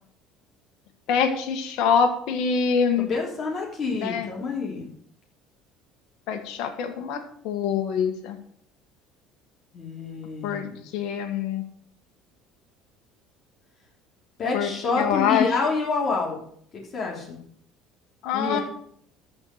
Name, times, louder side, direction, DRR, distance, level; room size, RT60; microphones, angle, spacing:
voice 1, 1.1-3.1 3.9-4.3 6.3-8.4 10.4-10.6 10.9-11.6 14.5-14.7 15.0-15.5 18.2-18.6, left 6 dB, 70° left, 5 dB, 1.6 m, -24 dB
voice 2, 3.1-4.9 9.7-10.8 14.4-16.4 16.7-17.4 18.3-18.6, left 4 dB, 45° left, -1 dB, 3.1 m, -27 dB
13.5 x 4.5 x 6.6 m, 0.64 s
supercardioid pair, 90°, 0 cm